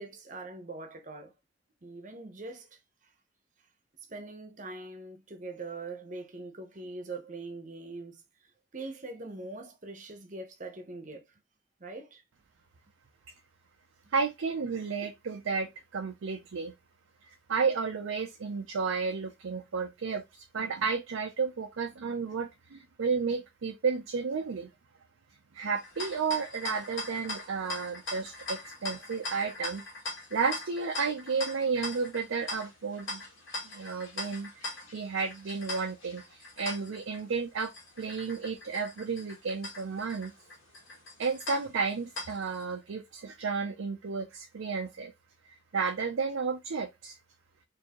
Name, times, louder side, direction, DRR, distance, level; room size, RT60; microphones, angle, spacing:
voice 1, 0.0-1.3 1.8-2.8 4.1-8.2 8.7-11.2 11.8-12.2, right 2 dB, 40° right, 0.8 m, -42 dB
voice 2, 14.1-16.7 17.5-24.7 25.5-29.8 30.3-33.2 33.6-40.3 41.2-45.1 45.7-47.2, right 5 dB, 85° right, 0.5 m, -32 dB
sound 1, 25.8-42.6, left 2 dB, 80° left, 1.5 m, -41 dB
4.5 x 2.7 x 2.9 m
head